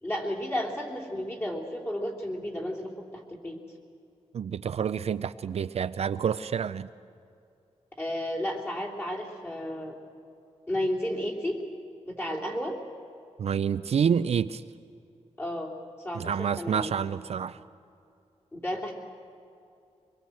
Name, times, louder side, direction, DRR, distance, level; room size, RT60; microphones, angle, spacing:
voice 1, 0.0-3.6 8.0-9.9 10.7-11.6 12.0-12.8 15.4-15.7 16.0-16.9 18.5-18.9, equal, 20° left, -3 dB, 3.2 m, -32 dB
voice 2, 4.3-6.9 13.4-14.6 16.1-17.6, right 7 dB, 60° right, 12 dB, 0.5 m, -28 dB
24.0 x 21.5 x 7.7 m, 2.5 s
wide cardioid pair, 155°, 12 cm